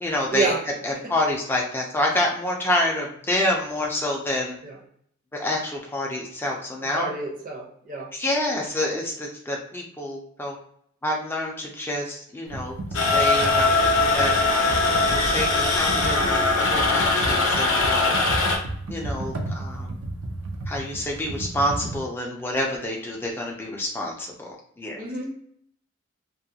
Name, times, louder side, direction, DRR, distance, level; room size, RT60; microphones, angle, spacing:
voice 1, 0.0-0.5 0.8-4.6 5.3-7.1 8.1-10.6 11.0-12.8 13.1-14.3 14.8-18.1 18.9-20.0 20.7-25.0, left 1 dB, 10° left, -1 dB, 0.4 m, -28 dB
voice 2, 6.9-8.1 25.0-25.3, right 3 dB, 40° right, -2 dB, 0.6 m, -28 dB
Computer keyboard, 12.5-22.0, right 1 dB, 75° right, 0.5 m, -33 dB
sound 1, 12.9-18.6, left 3 dB, 65° left, 0.5 m, -21 dB
2.3 x 2.1 x 2.7 m, 0.68 s
head